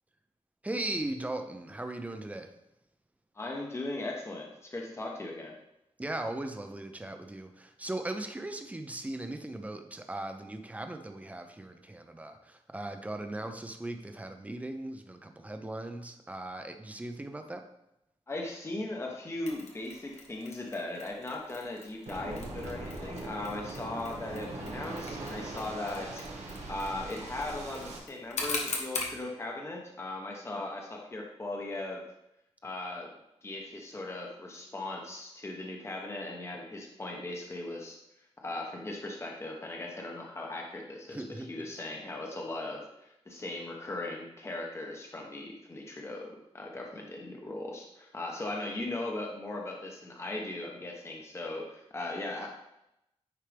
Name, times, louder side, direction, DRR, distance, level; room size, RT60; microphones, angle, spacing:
voice 1, 0.6-2.5 6.0-17.6 41.1-41.7, right 2 dB, 15° right, 6 dB, 0.7 m, -38 dB
voice 2, 3.3-5.6 18.3-26.3 26.7-32.0 32.6-33.1 33.4-38.0 38.4-52.5, left 2 dB, 25° left, 0 dB, 1.0 m, -38 dB
Mechanisms, 19.5-29.2, left 3 dB, 85° left, 1.3 m, -42 dB
Waves surf, 22.1-28.0, right 2 dB, 85° right, 1.5 m, -41 dB
9.9 x 4.6 x 3.4 m, 0.84 s
wide cardioid pair, 155°, 11 cm